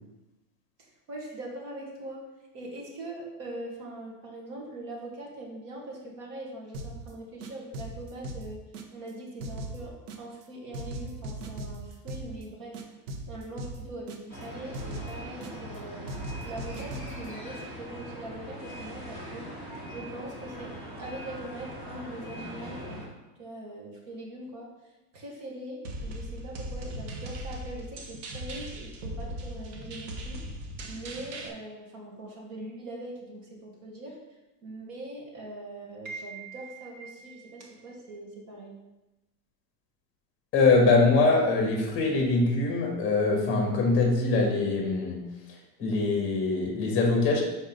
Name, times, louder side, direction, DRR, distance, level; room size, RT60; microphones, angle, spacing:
voice 1, 0.8-2.2 2.5-8.6 8.9-12.8 13.3-19.5 19.9-20.7 21.0-23.0 23.4-24.7 25.1-30.4 30.9-34.2 34.6-38.8, right 1 dB, 45° right, -2 dB, 1.9 m, -42 dB
sound 1, 6.7-7.1 7.4-9.1 9.4-10.4 10.7-12.4 12.7-14.4 14.7-15.8 16.1-17.3, right 1 dB, 80° right, 1.1 m, -39 dB
sound 2, 14.3-23.1, equal, 10° right, 1.6 m, -41 dB
sound 3, 25.8-31.5, right 1 dB, 60° right, 1.3 m, -38 dB
voice 2, 40.5-45.2 45.8-47.4, left 3 dB, 25° left, 0 dB, 1.5 m, -23 dB
5.4 x 4.4 x 5.3 m, 1.0 s
supercardioid pair, 160°, 47 cm